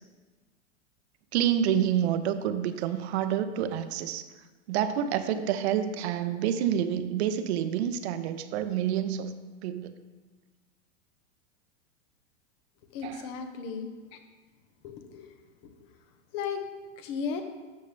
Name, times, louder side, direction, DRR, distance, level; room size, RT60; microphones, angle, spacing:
voice 1, 1.3-4.2 4.7-9.3 9.6-9.9 13.0-13.3, right 9 dB, 60° right, 11 dB, 0.8 m, -28 dB
voice 2, 12.9-13.9 14.8-15.3 16.3-16.6 17.0-17.4, left 6 dB, 50° left, 6 dB, 1.3 m, -34 dB
12.5 x 6.7 x 3.4 m, 1.3 s
hypercardioid pair, 120°, 36 cm